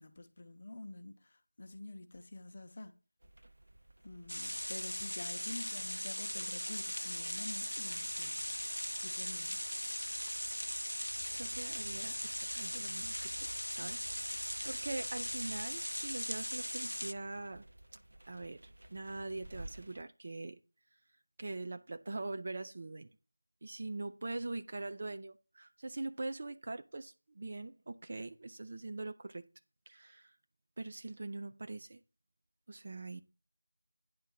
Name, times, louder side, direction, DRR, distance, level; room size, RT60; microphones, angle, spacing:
voice 1, 0.0-2.9 4.0-8.4 9.0-9.6, left 2 dB, 35° left, 0.8 m, -48 dB
sound 1, 3.2-20.0, right 1 dB, 55° right, 0.9 m, -55 dB
sound 2, 4.3-17.1, equal, 85° left, 0.4 m, -39 dB
voice 2, 11.3-17.6 18.3-20.6 21.4-23.1 23.6-29.5 29.9-30.3 30.8-32.0 32.7-33.2, right 2 dB, 35° right, 0.5 m, -43 dB
9.6 x 3.6 x 7.0 m
figure-of-eight pair, 170°, 0 cm